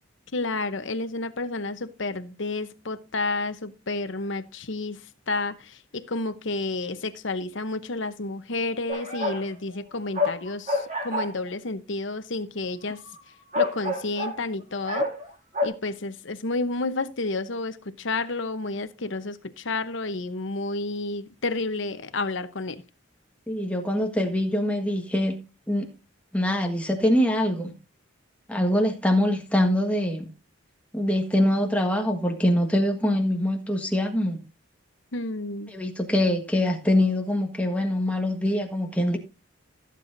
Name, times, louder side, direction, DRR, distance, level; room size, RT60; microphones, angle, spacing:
voice 1, 0.3-5.0 5.3-13.0 13.5-15.1 15.6-22.8 35.1-35.7, left 3 dB, 65° left, 0.9 m, -30 dB
sound 1, 8.9-9.5 9.8-11.5 13.1-13.2 13.5-14.4 14.8-15.3 15.5-15.7, left 2 dB, 35° right, 2.6 m, -27 dB
voice 2, 23.5-25.3 25.7-25.9 26.3-27.7 28.5-30.3 30.9-34.4 35.7-39.2, left 1 dB, 5° left, 1.4 m, -24 dB
16.0 x 7.7 x 2.6 m
head